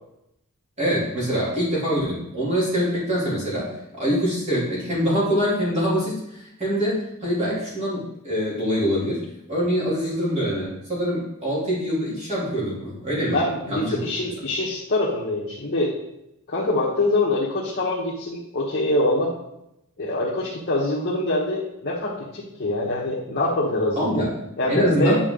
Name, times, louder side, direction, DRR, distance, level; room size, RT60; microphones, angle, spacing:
voice 1, 0.8-3.7 3.9-9.2 9.5-13.4 13.7-13.9 24.0-24.3 24.7-25.2, equal, 30° right, -7 dB, 2.9 m, -24 dB
voice 2, 13.3-15.9 16.5-19.3 20.0-24.3 24.6-25.2, left 2 dB, 50° left, -5 dB, 1.2 m, -24 dB
8.9 x 4.7 x 3.8 m, 0.84 s
head